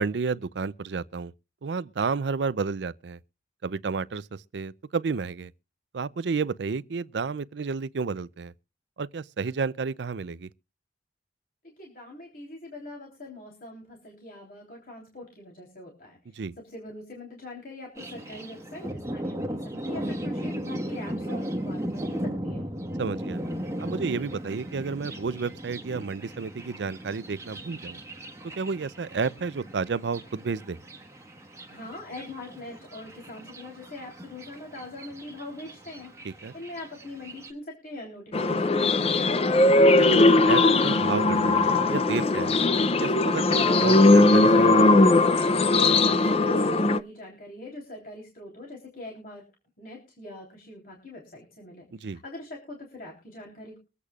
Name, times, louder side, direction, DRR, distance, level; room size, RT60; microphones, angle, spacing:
voice 1, 0.0-1.3 1.6-3.2 3.6-5.5 5.9-8.5 9.0-10.5 16.4-16.6 23.0-23.4 23.8-28.0 28.6-30.8 36.2-36.5 40.0-42.6 43.0-44.9 51.9-52.2, right 5 dB, 80° right, 0.5 m, -31 dB
voice 2, 11.6-16.2 16.6-22.6 31.7-36.1 36.5-39.6 46.0-49.4 49.8-53.8, left 2 dB, 55° left, 3.5 m, -42 dB
Thunder, 17.9-37.5, equal, 15° right, 1.3 m, -37 dB
sound 1, 38.3-47.0, left 2 dB, 35° left, 0.5 m, -19 dB
23.5 x 8.3 x 2.4 m
head